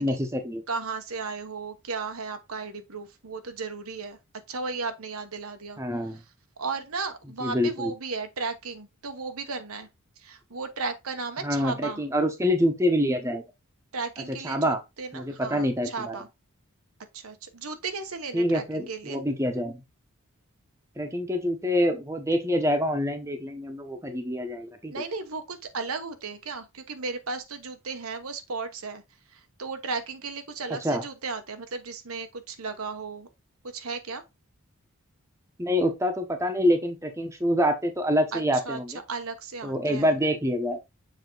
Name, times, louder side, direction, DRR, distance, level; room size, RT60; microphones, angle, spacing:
voice 1, 0.0-0.6 5.8-6.2 7.4-7.9 11.4-13.4 14.3-14.8 15.1-16.1 18.3-19.8 21.0-24.9 30.8-31.0 35.6-39.0 39.6-40.8, equal, 15° right, 1.0 m, -26 dB
voice 2, 0.7-4.2 4.5-5.8 6.6-9.9 10.2-12.0 13.9-16.3 17.1-19.2 24.9-29.0 29.3-33.3 33.6-34.2 38.3-38.8 39.1-40.1, right 4 dB, 80° right, 1.1 m, -35 dB
7.2 x 3.5 x 3.9 m
head